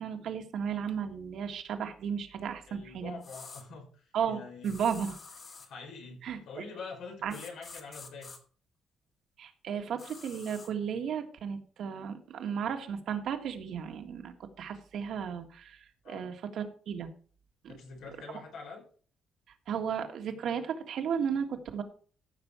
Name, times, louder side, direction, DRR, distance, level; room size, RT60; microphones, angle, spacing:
voice 1, 0.0-3.2 4.1-5.2 6.2-6.6 7.2-7.3 9.4-17.1 17.6-17.8 19.7-21.8, right 7 dB, 70° right, 5 dB, 1.6 m, -34 dB
voice 2, 2.7-4.7 5.6-8.3 16.0-16.3 17.7-18.8, left 4 dB, 80° left, 2 dB, 4.9 m, -45 dB
sound 1, 3.2-3.6 4.6-5.7 7.3-8.4 10.0-10.7, left 4 dB, 40° left, 2.1 m, -48 dB
15.0 x 6.2 x 4.5 m, 0.43 s
cardioid pair, 125°, 0 cm